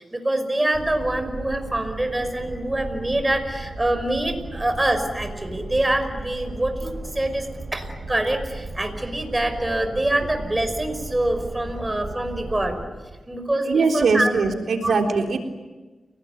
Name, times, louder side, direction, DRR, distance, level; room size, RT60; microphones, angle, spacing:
voice 1, 0.0-7.5 7.7-12.8 13.3-14.3 14.8-15.0, right 1 dB, 20° right, 6 dB, 5.7 m, -25 dB
sound 1, 0.7-12.9, right 2 dB, 55° right, 6.0 m, -36 dB
voice 2, 13.7-15.4, right 4 dB, 85° right, 3 dB, 3.7 m, -21 dB
30.0 x 19.5 x 9.5 m, 1.2 s
cardioid pair, 65°, 0 cm